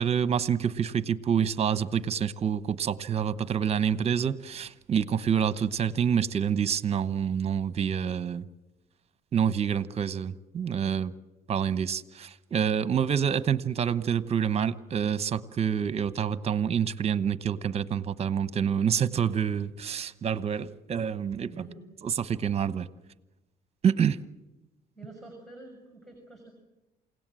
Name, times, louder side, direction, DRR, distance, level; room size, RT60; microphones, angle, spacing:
voice 1, 0.0-8.4 9.3-11.1 11.5-21.5 22.0-22.9 23.8-24.2, right 8 dB, 40° right, 15 dB, 1.0 m, -27 dB
voice 2, 21.5-21.8 25.0-26.5, right 2 dB, ahead, 4 dB, 6.3 m, -47 dB
28.5 x 17.5 x 7.7 m, 1.0 s
cardioid pair, 110°, 17 cm